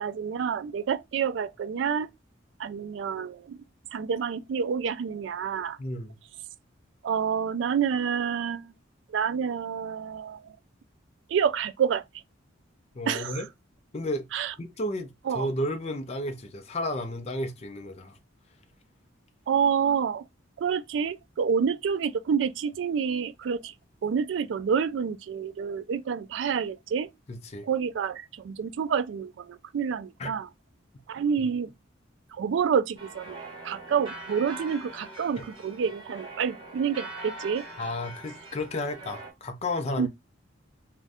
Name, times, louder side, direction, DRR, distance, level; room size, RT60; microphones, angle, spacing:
voice 1, 0.0-2.1 2.6-3.6 3.9-5.8 7.0-8.7 9.1-10.5 11.3-12.0 13.1-13.4 14.3-14.5 15.3-15.5 19.5-20.3 20.6-23.7 24.0-27.1 27.6-30.5 31.1-31.7 32.3-37.6 40.0-40.1, right 7 dB, 65° right, 0.3 m, -28 dB
voice 2, 5.8-6.2 12.9-13.5 13.9-14.3 14.6-18.2 27.3-27.7 30.2-30.3 31.4-31.5 37.8-40.1, left 1 dB, 35° left, 0.4 m, -32 dB
sound 1, 33.0-39.3, right 2 dB, 25° right, 1.3 m, -42 dB
2.5 x 2.1 x 3.3 m
head